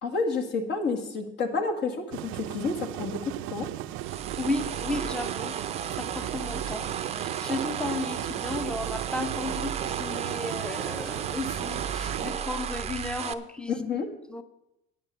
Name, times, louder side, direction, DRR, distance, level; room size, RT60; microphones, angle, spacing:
voice 1, 0.0-3.7 13.7-14.1, left 4 dB, 55° left, 5 dB, 1.8 m, -30 dB
sound 1, 2.1-12.3, right 14 dB, 75° right, 0.5 m, -36 dB
sound 2, 4.0-13.3, right 8 dB, 30° right, 0.6 m, -34 dB
voice 2, 4.4-5.5 6.0-6.9 7.2-13.7 14.3-14.4, left 2 dB, 5° left, 10 dB, 0.7 m, -34 dB
9.1 x 8.6 x 6.7 m, 0.88 s
cardioid pair, 130°, 21 cm